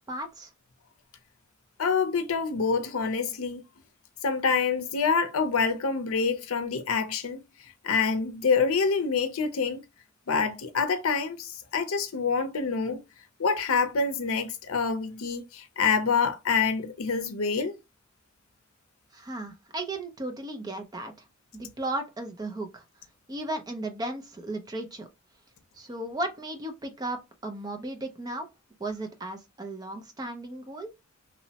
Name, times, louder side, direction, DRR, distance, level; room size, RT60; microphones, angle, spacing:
voice 1, 0.1-0.5 19.1-21.1 21.5-22.8 23.3-25.1 25.7-28.5 28.8-30.9, right 1 dB, 20° right, 0.4 m, -35 dB
voice 2, 1.8-3.6 4.2-7.4 7.8-9.8 10.3-13.0 13.4-17.7, left 5 dB, 85° left, 0.6 m, -26 dB
2.9 x 2.0 x 2.8 m
head